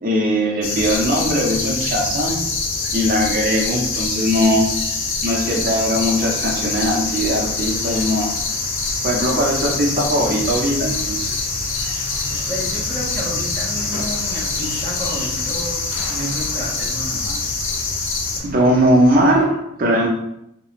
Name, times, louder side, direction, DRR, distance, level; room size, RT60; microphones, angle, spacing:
voice 1, 0.0-2.4 2.9-4.7 5.2-8.3 9.0-11.5 18.4-20.1, equal, 45° right, -1 dB, 0.5 m, -19 dB
sound 1, 0.6-18.4, left 4 dB, 80° left, 0.5 m, -24 dB
sound 2, 6.5-19.4, equal, 60° left, 1.4 m, -37 dB
voice 2, 12.5-17.6, equal, 10° left, -6 dB, 0.7 m, -31 dB
2.3 x 2.1 x 2.9 m, 0.80 s
head